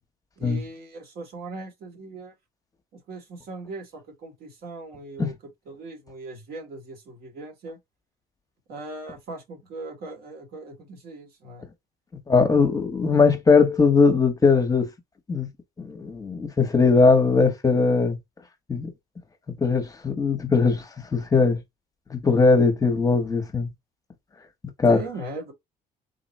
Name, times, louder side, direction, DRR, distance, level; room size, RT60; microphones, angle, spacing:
voice 1, 0.4-2.3 2.9-5.4 5.6-7.8 8.7-11.7 24.9-25.5, right 3 dB, 65° right, 1.6 m, -39 dB
voice 2, 12.3-14.9 15.3-15.5 15.8-18.2 18.7-18.9 19.5-20.8 21.1-21.6 22.1-23.7 24.8-25.0, left 4 dB, 20° left, 0.8 m, -20 dB
3.8 x 2.1 x 4.1 m
cardioid pair, 110°, 17 cm